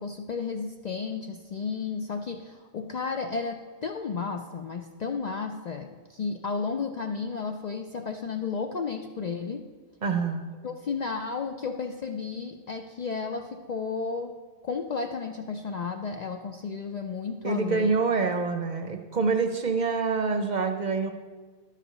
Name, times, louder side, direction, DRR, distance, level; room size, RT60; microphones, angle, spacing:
voice 1, 0.0-9.7 10.6-14.4 14.6-17.9, left 5 dB, 55° left, 5 dB, 0.5 m, -33 dB
voice 2, 10.0-10.5 17.4-21.1, right 4 dB, 50° right, 6 dB, 0.7 m, -26 dB
11.0 x 5.0 x 6.6 m, 1.4 s
omnidirectional pair, 1.1 m